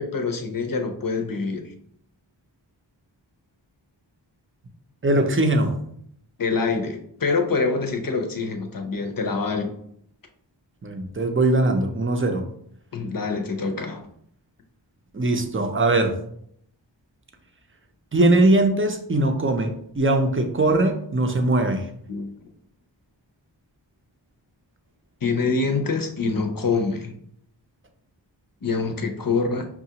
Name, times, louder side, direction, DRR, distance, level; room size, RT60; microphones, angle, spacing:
voice 1, 0.0-1.7 6.4-9.7 12.9-14.0 22.1-22.5 25.2-27.1 28.6-29.7, left 4 dB, 50° left, 4 dB, 0.7 m, -25 dB
voice 2, 5.0-5.8 10.8-12.5 15.1-16.1 18.1-21.9, right 2 dB, 30° right, 5 dB, 0.6 m, -21 dB
5.7 x 2.4 x 2.8 m, 0.69 s
wide cardioid pair, 45°, 45 cm